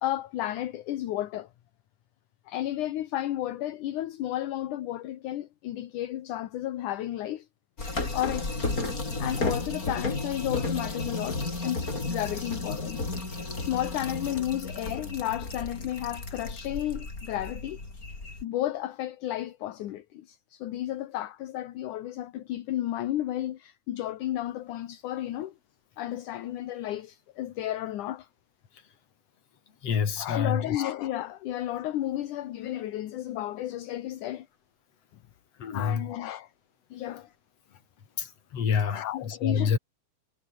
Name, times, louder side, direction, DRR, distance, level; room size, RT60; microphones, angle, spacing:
voice 1, 0.0-1.5 2.5-7.5 8.1-8.5 9.2-13.1 13.6-17.8 18.4-25.5 26.0-28.3 30.2-34.5 35.7-36.5 36.9-37.3 38.9-39.8, left 13 dB, 70° left, 2.7 m, -32 dB
sound 1, 7.8-18.4, left 3 dB, 25° left, 4.9 m, -33 dB
voice 2, 29.8-30.8 35.6-36.1 38.2-39.8, left 6 dB, 50° left, 3.8 m, -28 dB
omnidirectional pair, 3.7 m